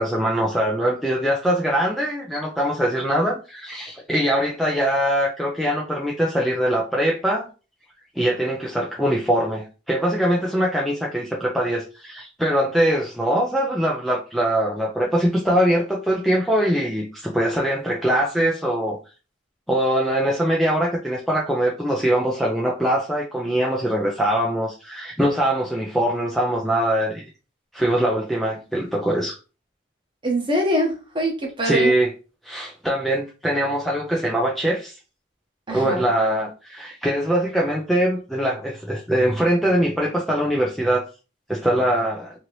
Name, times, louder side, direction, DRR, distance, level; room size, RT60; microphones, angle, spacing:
voice 1, 0.0-7.5 8.2-19.0 19.7-27.2 27.7-29.3 31.6-32.1 32.4-35.0 35.7-41.0 41.5-42.3, right 1 dB, ahead, 0.3 m, -22 dB
voice 2, 30.2-31.9 35.7-36.1, equal, 25° right, 0.9 m, -23 dB
2.8 x 2.6 x 3.0 m
head